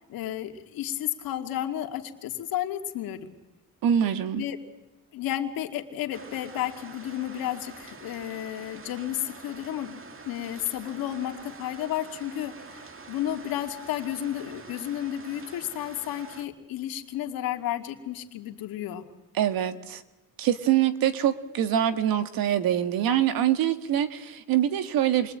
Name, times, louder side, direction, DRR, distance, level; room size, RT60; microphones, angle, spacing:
voice 1, 0.0-3.3 4.3-4.6 5.1-10.0 10.3-19.0, left 12 dB, 85° left, 5 dB, 2.4 m, -32 dB
voice 2, 3.8-4.4 19.3-20.0 20.4-25.3, right 10 dB, 80° right, 10 dB, 1.8 m, -24 dB
sound 1, 6.1-16.5, right 4 dB, 40° right, 2.3 m, -46 dB
27.5 x 22.5 x 8.8 m, 0.98 s
cardioid pair, 90°, 35 cm